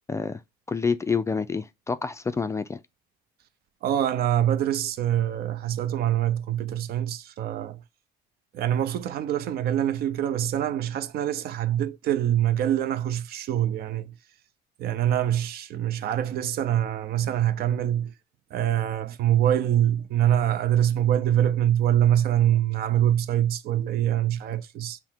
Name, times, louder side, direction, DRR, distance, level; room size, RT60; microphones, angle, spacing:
voice 1, 0.1-0.4 0.7-2.8, left 5 dB, 15° left, 0.3 m, -28 dB
voice 2, 3.8-7.8 8.5-14.1 14.8-18.1 18.5-25.0, right 11 dB, 65° right, 0.6 m, -24 dB
5.6 x 2.1 x 4.4 m
cardioid pair, 110°, 17 cm